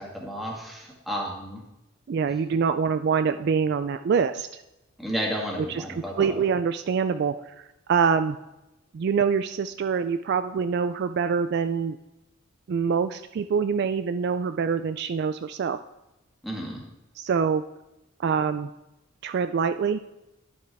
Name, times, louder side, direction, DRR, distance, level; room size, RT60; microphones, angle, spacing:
voice 1, 0.0-1.6 5.0-6.4 16.4-16.8, equal, ahead, -3 dB, 1.8 m, -32 dB
voice 2, 2.1-4.6 5.6-7.5 7.9-8.4 8.9-12.0 12.7-15.8 17.2-17.6 18.2-18.7 19.2-20.0, right 6 dB, 50° right, 10 dB, 0.3 m, -25 dB
11.0 x 7.9 x 3.4 m, 0.94 s
head